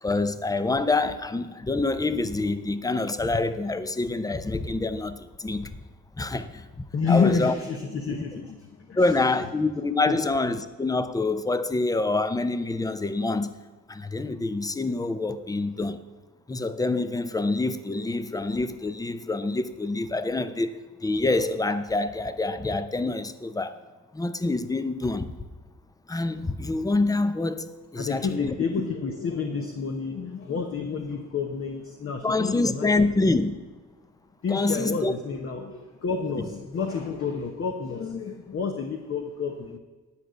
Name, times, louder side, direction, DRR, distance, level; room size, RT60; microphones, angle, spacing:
voice 1, 0.0-5.7 6.2-6.6 7.1-7.5 9.0-13.5 13.9-16.0 16.5-23.8 24.1-25.3 26.1-28.5 32.2-33.6 34.5-35.1 36.4-36.5, left 2 dB, 10° left, 0.6 m, -26 dB
voice 2, 6.9-9.1 10.1-10.2 28.0-33.3 34.4-39.8, left 5 dB, 45° left, 1.0 m, -29 dB
10.0 x 5.0 x 7.9 m
cardioid pair, 90°, 30 cm